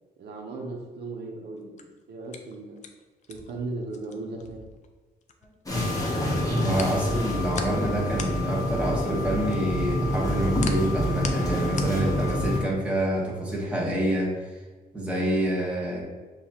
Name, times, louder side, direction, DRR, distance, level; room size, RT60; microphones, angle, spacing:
voice 1, 0.2-2.8 3.3-4.6, right 3 dB, 90° right, 0 dB, 0.8 m, -37 dB
sound 1, 1.6-5.8 6.1-12.6, left 5 dB, 45° left, 0.4 m, -39 dB
sound 2, 5.7-12.6, left 1 dB, 20° left, 0.9 m, -27 dB
voice 2, 6.5-14.6 14.9-16.0, right 1 dB, 5° right, -4 dB, 1.1 m, -27 dB
6.7 x 2.4 x 2.8 m, 1.3 s
wide cardioid pair, 150°, 17 cm